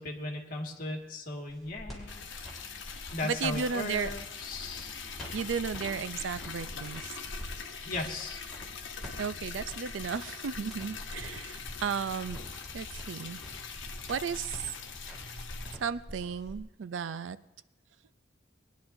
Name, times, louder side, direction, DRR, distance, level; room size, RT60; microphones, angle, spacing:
voice 1, 0.0-2.3 3.1-5.0 7.8-8.4, left 2 dB, 50° left, 0 dB, 1.8 m, -37 dB
sound 1, 1.5-16.6, equal, ahead, 3.6 m, -45 dB
Liquid, 2.1-15.7, left 6 dB, 75° left, 1.1 m, -43 dB
voice 2, 3.2-4.1 5.3-7.1 9.2-12.4 12.7-13.4 14.1-14.6 15.8-17.4, right 6 dB, 80° right, 14 dB, 0.4 m, -34 dB
21.5 x 10.5 x 2.6 m, 0.94 s
head